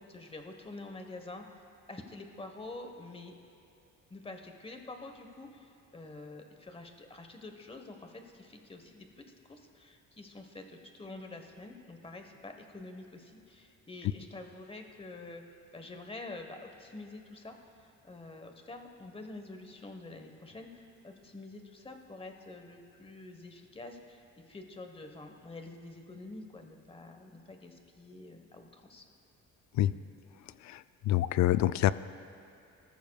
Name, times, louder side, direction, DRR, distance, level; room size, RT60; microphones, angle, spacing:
voice 1, 0.0-3.3 4.1-15.4 15.7-24.2 24.5-29.1, left 2 dB, 20° left, 4 dB, 1.2 m, -47 dB
voice 2, 31.1-31.9, left 14 dB, 65° left, 15 dB, 0.4 m, -25 dB
20.0 x 14.0 x 2.4 m, 2.7 s
cardioid pair, 90°, 30 cm